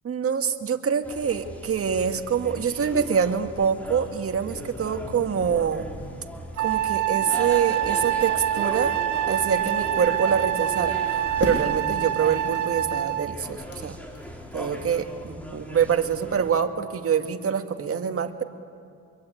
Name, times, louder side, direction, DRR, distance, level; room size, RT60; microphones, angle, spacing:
voice 1, 0.0-5.9 6.6-8.9 9.3-11.0 11.4-14.0 14.5-18.4, right 7 dB, 50° right, 6 dB, 1.9 m, -25 dB
sound 1, 1.0-16.6, equal, 5° left, 4.5 m, -39 dB
sound 2, 2.2-14.9, left 2 dB, 50° left, 7.5 m, -41 dB
Wind instrument woodwind instrument, 6.6-13.3, right 12 dB, 80° right, 1.2 m, -26 dB
25.5 x 22.5 x 9.2 m, 2.4 s
cardioid pair, 90°, 30 cm